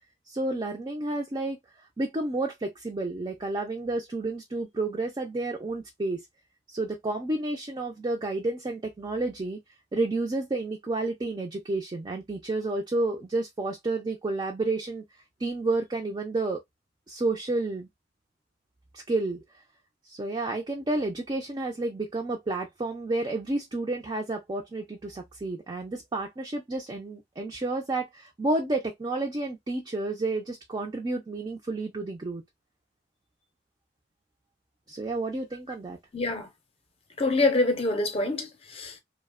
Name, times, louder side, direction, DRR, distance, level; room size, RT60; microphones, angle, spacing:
voice 1, 0.3-1.6 2.0-6.2 6.7-9.6 9.9-15.0 15.4-16.6 17.1-17.9 18.9-19.4 20.1-32.4 34.9-36.0, right 2 dB, 25° right, 0.4 m, -30 dB
voice 2, 36.1-36.5 37.2-39.0, left 2 dB, 30° left, 0.6 m, -26 dB
2.8 x 2.1 x 2.2 m
head